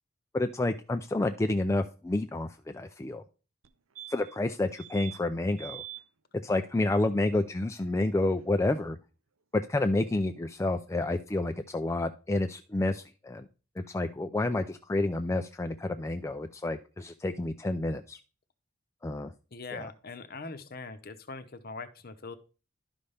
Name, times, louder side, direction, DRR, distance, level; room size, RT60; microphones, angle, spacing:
voice 1, 0.3-3.2 4.1-5.8 6.4-9.0 9.5-13.5 13.8-18.2 19.0-19.3 19.7-19.9, left 2 dB, 15° left, 6 dB, 0.3 m, -29 dB
sound 1, 3.6-3.7 4.0-4.4 4.8-5.2 5.6-6.0 8.4-8.5 8.7-8.8, right 14 dB, 75° right, 0.5 m, -44 dB
voice 2, 19.5-22.4, left 3 dB, 45° left, 10 dB, 0.8 m, -42 dB
11.5 x 5.5 x 3.4 m, 0.34 s
head